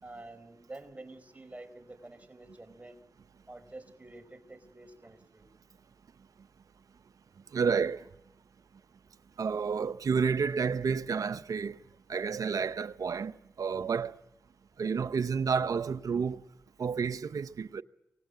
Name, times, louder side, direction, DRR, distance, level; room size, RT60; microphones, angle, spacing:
voice 1, 0.0-3.0 3.5-5.5, right 2 dB, 25° right, 4.4 m, -48 dB
voice 2, 7.5-8.0 9.4-11.8 12.1-13.3 13.6-14.2 14.8-16.4 16.8-17.8, right 6 dB, 75° right, 0.8 m, -30 dB
25.5 x 19.0 x 7.9 m
cardioid pair, 40°, 6 cm